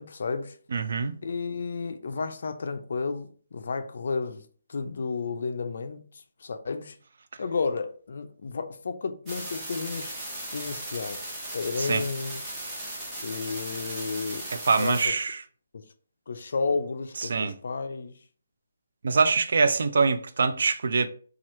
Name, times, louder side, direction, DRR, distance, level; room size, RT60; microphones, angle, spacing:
voice 1, 0.0-0.6 1.2-4.4 4.7-7.0 7.4-10.1 10.5-12.4 13.2-14.5 14.8-15.1 15.7-15.8 16.3-18.1, left 4 dB, 55° left, 0.4 m, -32 dB
voice 2, 0.7-1.2 11.8-12.0 14.5-15.4 17.3-17.5 19.0-21.1, right 4 dB, 55° right, 0.3 m, -24 dB
sound 1, 9.3-15.1, right 1 dB, 10° right, 0.7 m, -37 dB
2.9 x 2.3 x 3.1 m
hypercardioid pair, 170°, 0 cm